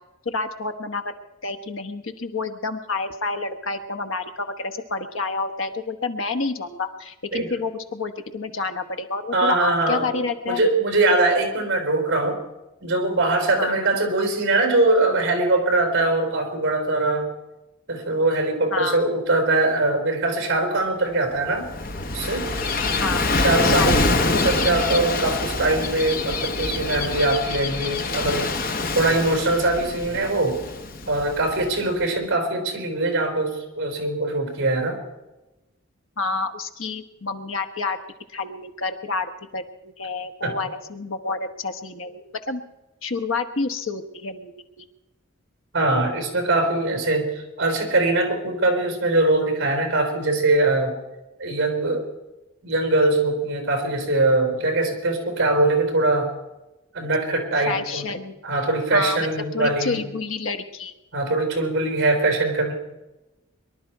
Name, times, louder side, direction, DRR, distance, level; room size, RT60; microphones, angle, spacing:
voice 1, 0.2-1.1 1.4-10.6 13.6-13.7 18.7-19.1 23.0-23.3 23.6-24.2 36.2-38.0 38.3-42.6 43.0-44.9 57.7-58.4 58.9-59.2 59.5-60.9, left 4 dB, 70° left, 8 dB, 1.1 m, -29 dB
voice 2, 9.3-12.4 12.8-17.3 17.9-21.7 22.1-22.5 23.3-30.6 31.1-35.0 40.4-40.6 45.7-51.0 51.4-52.1 52.6-56.3 56.9-58.1 58.4-60.0 61.1-62.7, right 2 dB, 55° right, 4 dB, 4.2 m, -22 dB
Gull seagull / Waves surf, 21.4-31.9, left 3 dB, 40° left, 0.9 m, -25 dB
23.0 x 12.0 x 4.6 m, 1.0 s
head